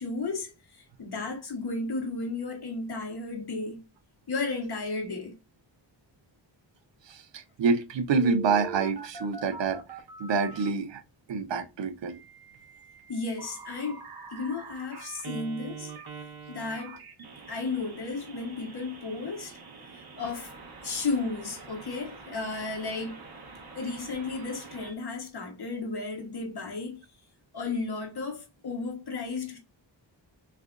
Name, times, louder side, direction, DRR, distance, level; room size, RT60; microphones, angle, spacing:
voice 1, 0.0-3.8 4.3-5.3 13.1-14.0 14.3-15.9 16.5-17.0 17.5-19.6 19.9-20.5 20.8-23.3 23.7-27.0 27.5-29.6, left 3 dB, 60° left, 1.3 m, -34 dB
voice 2, 7.0-9.8 10.2-11.0 11.3-12.2, right 5 dB, 75° right, 0.7 m, -27 dB
Telephone, 8.2-10.7 12.1-24.9, right 5 dB, 55° right, 1.1 m, -44 dB
3.5 x 3.3 x 2.5 m
cardioid pair, 70°, 45 cm